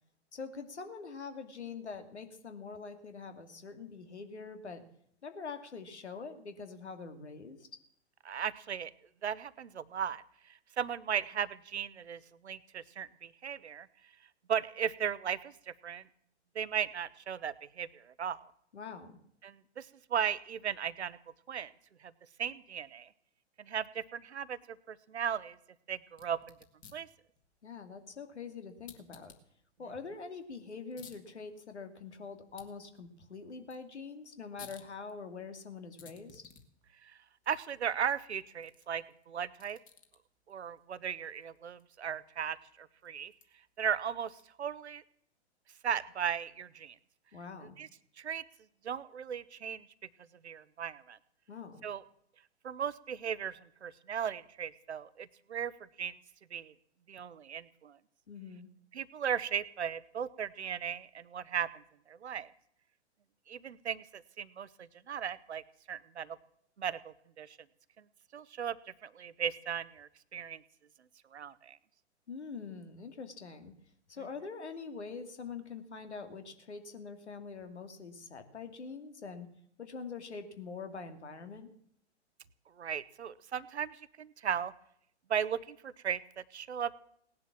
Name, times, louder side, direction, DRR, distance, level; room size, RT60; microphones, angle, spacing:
voice 1, 0.3-4.8 5.2-7.7 18.7-19.2 27.6-29.3 29.8-36.4 47.3-47.8 51.5-51.8 58.3-58.7 72.3-73.7 74.1-79.5 79.8-81.7, left 5 dB, 75° left, 7 dB, 2.6 m, -44 dB
voice 2, 8.2-8.9 9.2-10.2 10.8-13.9 14.5-16.0 16.5-18.5 19.4-21.2 21.5-21.7 22.0-22.1 22.4-23.1 23.6-24.6 24.9-25.6 25.9-26.5 26.9-27.1 37.0-37.2 37.5-39.8 40.5-43.3 43.8-45.0 45.8-46.9 47.8-47.9 48.2-48.4 48.8-49.9 50.4-51.2 51.8-52.0 52.6-55.7 56.0-56.1 56.5-56.7 57.1-58.0 58.9-61.8 62.1-62.5 63.5-65.6 65.9-66.4 66.8-67.6 68.3-70.6 71.3-71.8 82.8-84.7 85.3-86.9, right 8 dB, 70° right, 16 dB, 1.0 m, -36 dB
sound 1, 26.1-44.7, left 7 dB, 25° left, 2.0 m, -60 dB
18.5 x 10.5 x 7.4 m, 0.69 s
figure-of-eight pair, 115°, 34 cm